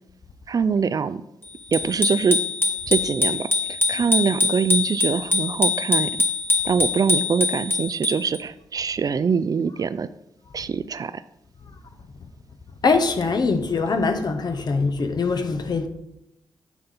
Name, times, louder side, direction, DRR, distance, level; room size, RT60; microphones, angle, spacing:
voice 1, 0.5-1.2 1.7-2.4 2.9-3.5 3.9-6.1 6.6-10.1 10.5-11.1, right 6 dB, 45° right, 0.3 m, -23 dB
Bicycle bell, 1.7-8.4, left 3 dB, 25° left, 1.3 m, -23 dB
voice 2, 12.8-15.9, left 4 dB, 55° left, 0.8 m, -22 dB
9.0 x 3.8 x 4.0 m
supercardioid pair, 50°, 9 cm